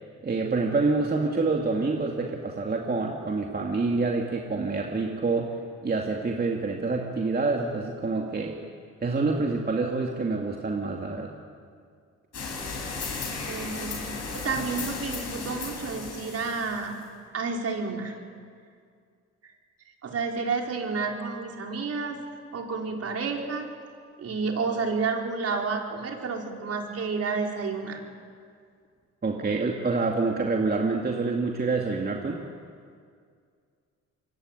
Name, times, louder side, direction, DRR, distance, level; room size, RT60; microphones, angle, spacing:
voice 1, 0.2-5.6 5.8-8.6 9.0-11.4 29.2-32.4, right 3 dB, 30° right, 0 dB, 2.7 m, -27 dB
sound 1, 12.3-17.0, left 4 dB, 55° left, 7.3 m, -35 dB
voice 2, 13.5-17.0 17.3-18.1 19.4-19.5 20.0-22.2 22.5-23.7 24.2-28.0, right 4 dB, 50° right, 1 dB, 4.7 m, -30 dB
26.0 x 23.5 x 9.3 m, 2.2 s
cardioid pair, 90°, 30 cm